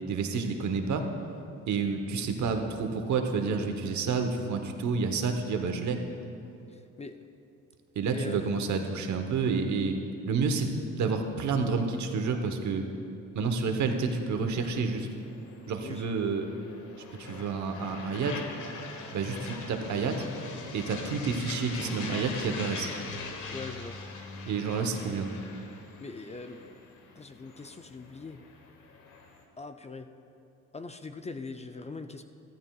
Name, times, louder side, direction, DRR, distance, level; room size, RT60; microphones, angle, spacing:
voice 1, 0.1-1.1 1.7-6.0 7.9-10.0 10.3-12.8 13.3-15.1 15.7-16.5 17.1-18.4 19.1-20.2 20.7-22.9 24.4-25.3, right 4 dB, 70° right, 5 dB, 1.1 m, -29 dB
voice 2, 6.7-7.2 8.0-8.5 15.8-16.0 23.5-24.0 26.0-26.8 27.2-28.4 29.6-30.1 30.7-32.2, left 3 dB, 20° left, 8 dB, 0.5 m, -41 dB
sound 1, 14.6-29.4, left 4 dB, 80° left, 1.3 m, -42 dB
14.5 x 13.0 x 2.4 m, 2.6 s
cardioid pair, 90°, 30 cm